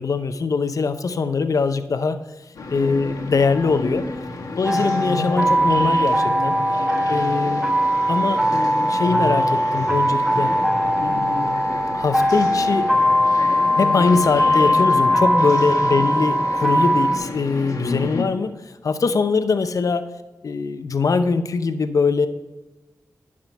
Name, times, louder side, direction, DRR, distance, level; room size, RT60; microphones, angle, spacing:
voice 1, 0.0-2.2 2.7-4.0 4.6-6.6 7.1-7.7 8.1-10.5 11.0-11.6 11.9-12.9 13.8-18.5 18.8-20.1 20.4-22.3, left 4 dB, 65° left, 10 dB, 0.6 m, -22 dB
Time Hall, 2.5-18.2, left 2 dB, 80° left, 1.2 m, -31 dB
sound 1, 4.6-17.2, equal, 5° right, 1.0 m, -20 dB
10.5 x 3.7 x 5.5 m, 1.2 s
cardioid pair, 50°, 6 cm